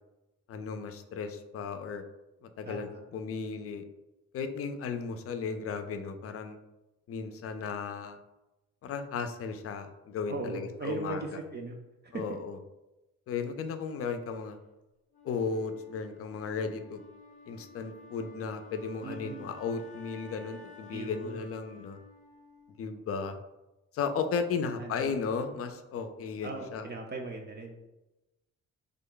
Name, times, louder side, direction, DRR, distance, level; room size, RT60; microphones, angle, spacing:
voice 1, 0.5-2.0 2.4-3.8 4.3-6.6 7.1-8.2 8.8-11.2 12.1-12.6 13.3-14.6 15.2-17.0 17.5-22.0 22.8-23.4 23.9-26.9, left 5 dB, 50° left, 8 dB, 0.4 m, -35 dB
voice 2, 2.7-3.0 10.3-11.8 12.0-12.4 19.0-19.5 20.9-21.5 24.8-25.3 26.4-28.0, right 3 dB, 35° right, 2 dB, 0.5 m, -39 dB
Wind instrument woodwind instrument, 15.1-23.1, left 3 dB, 25° left, 0.8 m, -53 dB
3.4 x 2.2 x 3.7 m, 1.0 s
cardioid pair, 90°, 30 cm